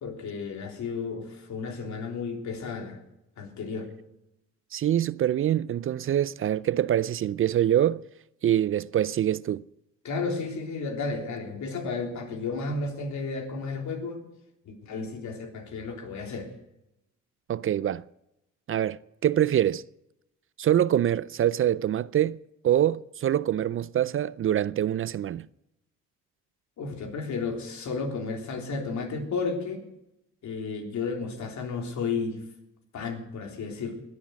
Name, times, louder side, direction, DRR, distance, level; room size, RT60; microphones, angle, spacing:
voice 1, 0.0-3.0 3.4-3.9 10.0-14.2 14.7-16.5 26.8-29.8 30.4-32.4 32.9-34.0, left 4 dB, 65° left, 3.5 m, -33 dB
voice 2, 4.7-8.0 8.4-9.6 17.5-18.0 18.7-19.8 20.6-22.4 22.6-25.5, right 11 dB, 45° right, 0.4 m, -25 dB
21.5 x 7.3 x 6.3 m
cardioid pair, 90°, 30 cm